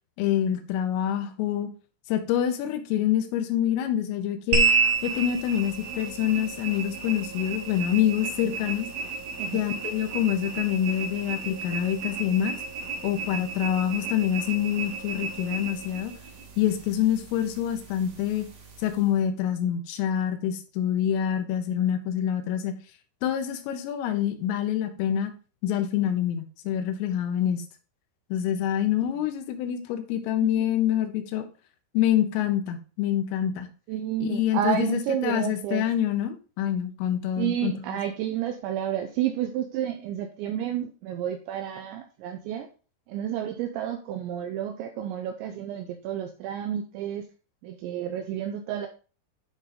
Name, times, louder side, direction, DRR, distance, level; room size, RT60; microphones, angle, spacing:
voice 1, 0.2-1.7 2.1-4.7 5.0-8.9 9.5-12.6 13.0-16.1 16.6-18.5 18.8-22.7 23.2-25.3 25.6-27.6 28.3-31.4 31.9-33.7 34.2-37.7, left 10 dB, 85° left, 7 dB, 3.5 m, -26 dB
sound 1, 4.5-19.1, right 4 dB, 65° right, 1.7 m, -31 dB
voice 2, 33.9-35.9 37.4-42.7 43.1-47.3 47.6-48.9, right 10 dB, 85° right, 6 dB, 2.6 m, -30 dB
10.0 x 3.8 x 4.1 m, 0.36 s
omnidirectional pair, 5.8 m